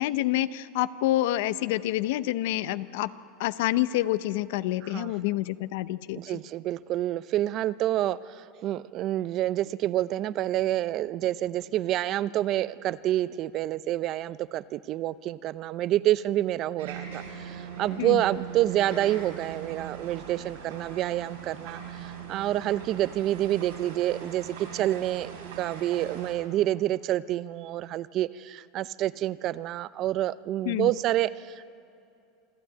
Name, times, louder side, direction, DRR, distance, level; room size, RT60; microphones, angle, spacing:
voice 1, 0.0-3.1 3.4-6.2 18.0-18.2 30.7-30.9, left 15 dB, 75° left, 15 dB, 0.7 m, -27 dB
voice 2, 6.2-31.7, right 13 dB, 50° right, 17 dB, 0.6 m, -28 dB
sound 1, 16.8-26.3, right 7 dB, 90° right, 4.5 m, -41 dB
26.5 x 12.0 x 9.0 m, 2.6 s
hypercardioid pair, 100°, 0 cm